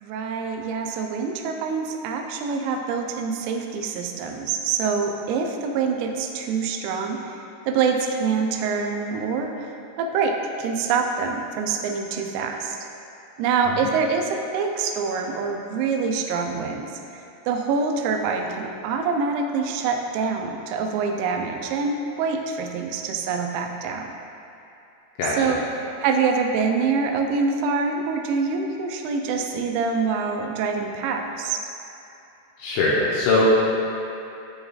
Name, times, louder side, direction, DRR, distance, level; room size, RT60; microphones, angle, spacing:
voice 1, 0.0-9.7 10.0-12.8 13.4-24.1 25.3-25.6 26.0-31.6, right 5 dB, 90° right, 3 dB, 3.4 m, -25 dB
voice 2, 25.2-25.6 32.6-33.5, left 2 dB, 80° left, -6 dB, 2.7 m, -21 dB
13.5 x 5.5 x 2.3 m, 2.7 s
omnidirectional pair, 6.0 m